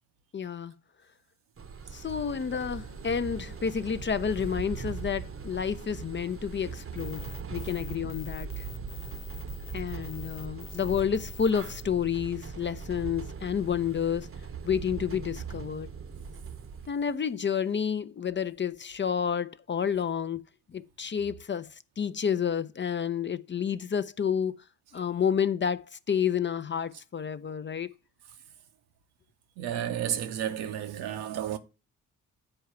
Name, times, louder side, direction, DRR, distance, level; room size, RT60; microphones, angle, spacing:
voice 1, 0.3-0.7 1.9-8.7 9.7-14.3 14.6-15.9 16.9-20.4 20.7-24.5 24.9-27.9, left 7 dB, 30° left, 0.5 m, -30 dB
sound 1, 1.6-16.9, right 6 dB, 35° right, 0.9 m, -40 dB
sound 2, 7.0-11.8, left 10 dB, 75° left, 0.6 m, -48 dB
voice 2, 29.6-31.6, right 10 dB, 70° right, 1.0 m, -32 dB
8.7 x 4.6 x 5.7 m
hypercardioid pair, 40°, 40 cm